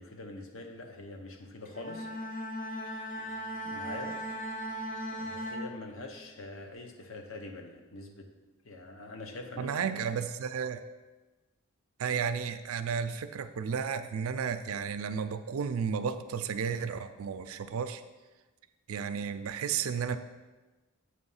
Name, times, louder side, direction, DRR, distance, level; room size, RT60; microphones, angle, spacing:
voice 1, 0.0-2.1 3.6-4.2 5.1-8.3 8.6-9.9, left 2 dB, 70° left, 4 dB, 0.8 m, -44 dB
Bowed string instrument, 1.7-6.3, equal, 40° left, 0.6 m, -38 dB
voice 2, 9.6-10.8 12.0-18.0 18.9-20.2, right 6 dB, 80° right, 11 dB, 0.4 m, -33 dB
7.9 x 3.1 x 5.5 m, 1.2 s
head